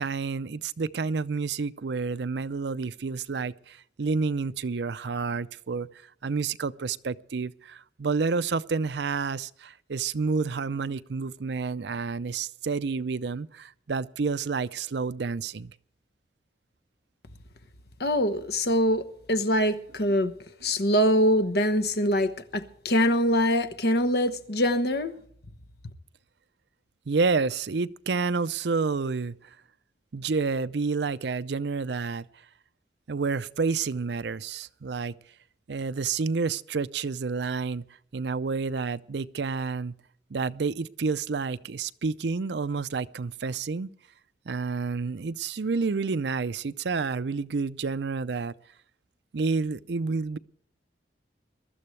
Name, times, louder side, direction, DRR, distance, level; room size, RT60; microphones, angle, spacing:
voice 1, 0.0-5.9 6.2-15.7 27.1-29.4 30.1-32.3 33.1-35.1 35.7-37.8 38.1-39.9 40.3-43.9 44.5-48.5 49.3-50.4, right 4 dB, 70° right, 0.5 m, -29 dB
voice 2, 18.0-19.0 19.3-20.3 20.6-25.1, equal, 60° left, 1.1 m, -24 dB
22.5 x 13.0 x 3.3 m
head